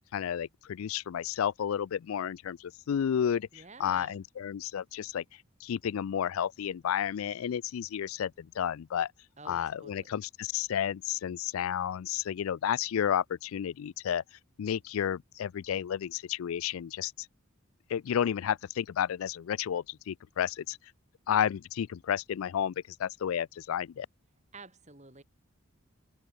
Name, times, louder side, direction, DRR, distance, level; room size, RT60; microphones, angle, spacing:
voice 1, 0.1-3.5 3.8-5.2 5.6-9.1 9.5-14.2 14.6-17.1 17.9-20.8 21.3-22.7 23.0-24.1, left 9 dB, 80° left, 0.3 m, -31 dB
voice 2, 3.5-4.2 9.4-10.1 24.5-25.2, right 3 dB, 35° right, 4.0 m, -50 dB
head